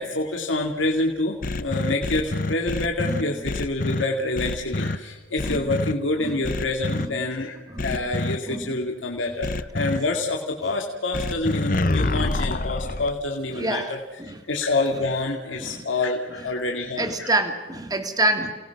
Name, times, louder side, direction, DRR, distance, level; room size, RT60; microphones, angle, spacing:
voice 1, 0.0-17.3, left 2 dB, 90° left, 1 dB, 2.4 m, -27 dB
sound 1, 1.4-4.0 4.4-5.0 5.4-5.9 6.4-7.1 7.8-8.4 9.4-10.0 11.1-13.1, left 2 dB, 45° left, 0.9 m, -26 dB
voice 2, 8.5-8.8 13.6-13.9 14.3-14.4 15.6-15.8 17.0-18.5, right 1 dB, 20° right, 6 dB, 2.1 m, -26 dB
29.5 x 19.0 x 6.0 m, 1.3 s
head